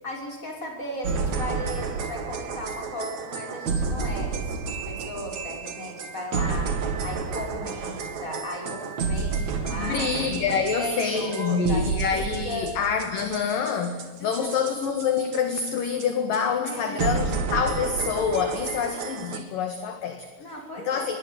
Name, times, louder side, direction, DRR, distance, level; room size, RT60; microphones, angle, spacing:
voice 1, 0.0-6.7 7.0-10.1 10.8-12.7 14.2-14.5 16.6-17.2 20.4-21.2, left 1 dB, 20° left, 1 dB, 6.2 m, -36 dB
sound 1, 1.0-15.7 16.0-16.1 16.3-16.4 16.7-16.8 17.0-19.4, right 5 dB, 45° right, 3.2 m, -30 dB
voice 2, 9.7-20.3 20.8-21.2, left 6 dB, 60° left, 7 dB, 3.2 m, -26 dB
26.5 x 22.0 x 9.2 m, 1.1 s
omnidirectional pair, 5.0 m